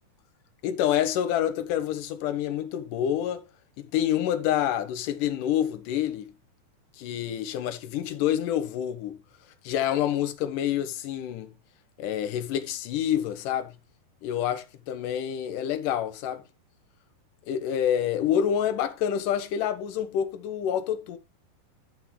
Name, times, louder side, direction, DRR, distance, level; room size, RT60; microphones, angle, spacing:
voice 1, 0.6-3.5 3.8-6.3 7.0-9.2 9.6-11.5 12.0-13.7 14.2-16.4 17.5-21.2, left 10 dB, 70° left, 2.2 m, -27 dB
13.5 x 5.6 x 3.2 m
omnidirectional pair, 4.6 m